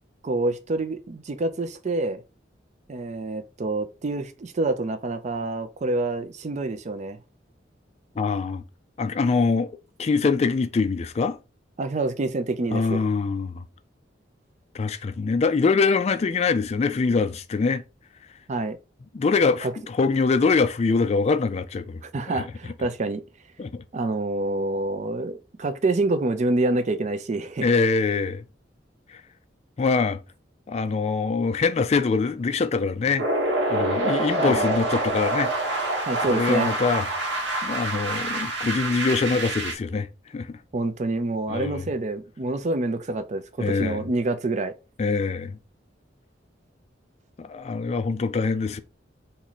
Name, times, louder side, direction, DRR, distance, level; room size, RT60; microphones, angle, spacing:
voice 1, 0.2-2.2 2.9-7.2 11.8-13.0 18.5-18.8 19.6-19.7 22.0-23.2 23.9-27.7 34.4-34.7 36.0-36.7 40.7-44.7, right 2 dB, 40° right, 0.4 m, -27 dB
voice 2, 8.2-8.6 9.0-9.7 10.0-11.4 12.7-13.6 14.7-17.8 19.1-22.0 22.3-22.4 23.6-23.8 27.6-28.4 29.1-29.2 29.8-30.2 30.7-33.3 33.7-35.9 36.3-37.1 37.6-40.1 40.3-40.6 41.5-41.8 43.6-44.0 45.0-45.6 47.4-48.8, left 4 dB, 35° left, 0.3 m, -24 dB
sound 1, 33.2-39.7, right 2 dB, 80° right, 1.1 m, -26 dB
3.0 x 2.6 x 4.0 m
head